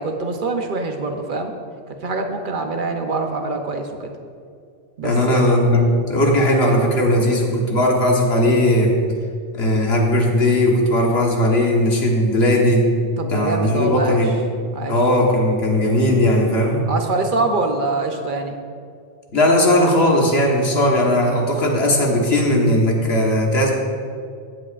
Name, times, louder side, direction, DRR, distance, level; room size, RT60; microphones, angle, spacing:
voice 1, 0.0-1.5 2.0-4.1 5.0-5.5 13.2-14.2 14.7-15.0 16.9-18.5, right 3 dB, 55° right, 4 dB, 0.9 m, -24 dB
voice 2, 5.0-9.0 9.6-12.8 13.3-14.3 14.9-16.9 19.3-23.7, left 1 dB, 75° left, -1 dB, 1.6 m, -17 dB
15.5 x 8.0 x 2.5 m, 2.2 s
omnidirectional pair, 1.1 m